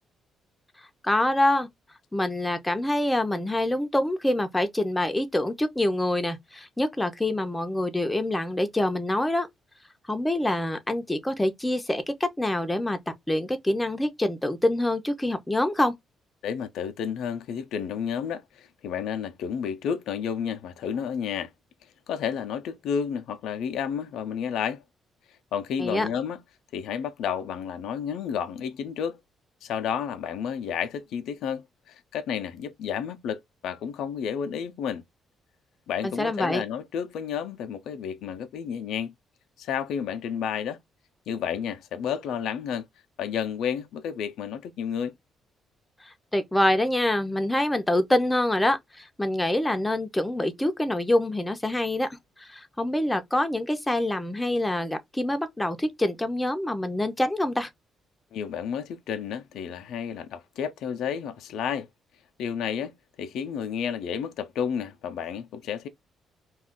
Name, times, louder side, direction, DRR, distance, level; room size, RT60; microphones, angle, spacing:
voice 1, 1.0-1.7 2.1-9.5 10.1-13.0 13.3-15.9 25.8-26.1 36.0-36.6 46.0-52.1 52.4-57.7, left 1 dB, 10° left, 0.6 m, -26 dB
voice 2, 16.4-21.5 22.1-24.8 25.5-26.4 26.7-29.2 29.6-35.0 35.9-39.1 39.6-40.8 41.3-42.9 43.2-45.1 58.3-61.9 62.4-62.9 63.2-65.9, left 7 dB, 80° left, 0.4 m, -31 dB
2.3 x 2.3 x 3.5 m
cardioid pair, 90°, 0 cm